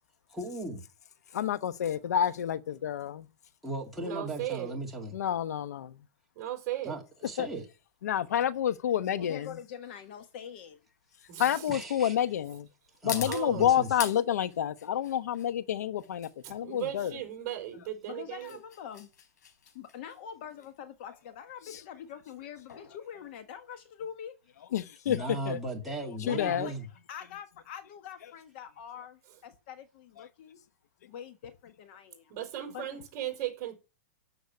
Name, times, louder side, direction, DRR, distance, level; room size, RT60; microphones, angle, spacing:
voice 1, 0.3-0.8 3.6-5.1 6.8-7.7 11.7-12.1 13.0-13.9 25.1-26.8, right 1 dB, ahead, 2.3 m, -37 dB
voice 2, 1.3-3.3 5.1-5.9 7.4-7.5 8.0-9.5 11.4-12.7 13.0-17.1 24.7-25.6 26.3-26.7, left 10 dB, 70° left, 0.9 m, -29 dB
voice 3, 4.0-4.8 6.3-7.0 11.3-11.7 13.2-13.8 16.4-18.6 32.3-33.7, right 12 dB, 30° right, 4.9 m, -37 dB
sound 1, 7.5-24.1, left 7 dB, 90° left, 4.4 m, -46 dB
voice 4, 9.2-10.8 18.1-19.1 19.7-24.3 26.2-26.8 27.1-30.6 31.0-32.4 32.7-33.0, left 8 dB, 35° left, 1.4 m, -44 dB
13.0 x 6.5 x 9.5 m
supercardioid pair, 175°, 9 cm